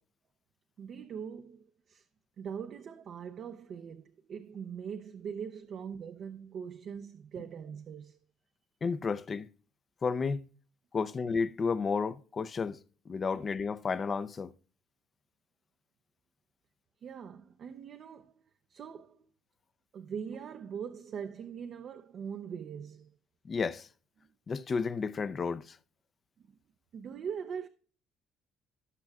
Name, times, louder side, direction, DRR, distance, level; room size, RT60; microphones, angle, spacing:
voice 1, 0.8-2.1 2.4-8.2 13.3-13.5 17.0-18.3 18.7-19.3 19.9-23.1 26.4-26.6 26.9-27.7, right 7 dB, 45° right, 0.6 m, -42 dB
voice 2, 8.8-9.5 10.0-10.4 10.9-12.8 13.1-14.5 23.5-23.9 24.5-25.8, left 5 dB, 30° left, 0.5 m, -32 dB
18.5 x 6.1 x 2.4 m
cardioid pair, 135°, 0 cm